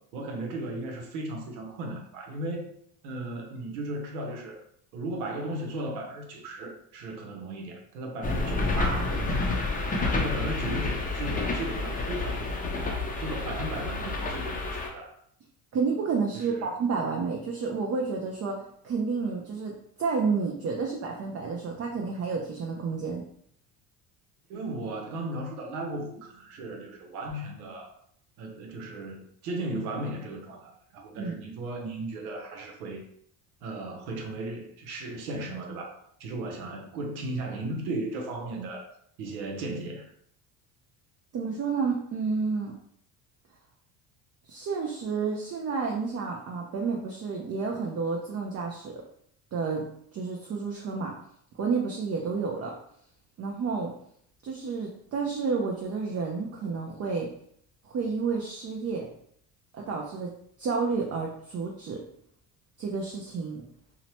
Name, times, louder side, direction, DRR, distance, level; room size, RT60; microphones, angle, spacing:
voice 1, 0.0-2.7 3.0-4.6 4.9-9.7 10.0-12.6 13.2-15.1 16.3-16.8 24.5-27.9 28.4-33.0 33.6-38.9 39.2-40.1, right 2 dB, 90° right, 0.7 m, -36 dB
sound 1, 8.2-14.9, left 3 dB, 20° left, 0.5 m, -29 dB
voice 2, 15.7-19.7 20.0-23.2 31.2-31.4 41.3-42.7 44.5-48.9 49.5-49.9 50.1-51.1 51.5-52.7 53.4-53.9 54.4-57.3 57.8-59.1 59.7-60.3 60.6-62.0 62.8-63.6, right 4 dB, 35° right, 0.5 m, -30 dB
2.8 x 2.1 x 2.8 m
supercardioid pair, 80°, 43 cm